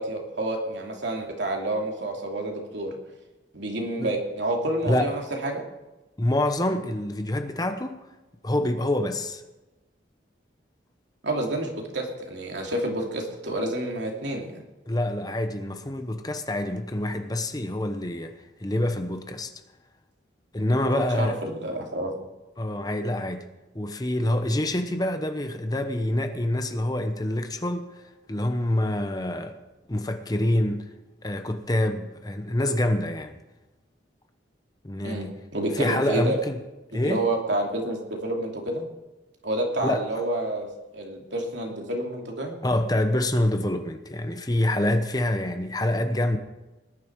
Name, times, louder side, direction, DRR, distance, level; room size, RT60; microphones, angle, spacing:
voice 1, 0.0-2.9 3.5-5.6 11.2-14.6 20.8-22.2 35.0-35.3 35.5-36.4 36.9-38.9 39.4-40.7 40.9-42.6, right 1 dB, 75° right, 1 dB, 2.8 m, -29 dB
voice 2, 4.8-5.2 6.2-8.0 8.4-9.4 14.9-19.5 20.5-21.4 22.6-23.4 23.7-27.9 28.3-29.6 29.9-30.8 31.2-33.4 34.8-35.4 35.7-36.6 36.9-37.2 39.8-40.2 42.6-46.4, left 1 dB, 20° left, 7 dB, 0.9 m, -26 dB
19.0 x 11.0 x 4.7 m, 1.1 s
head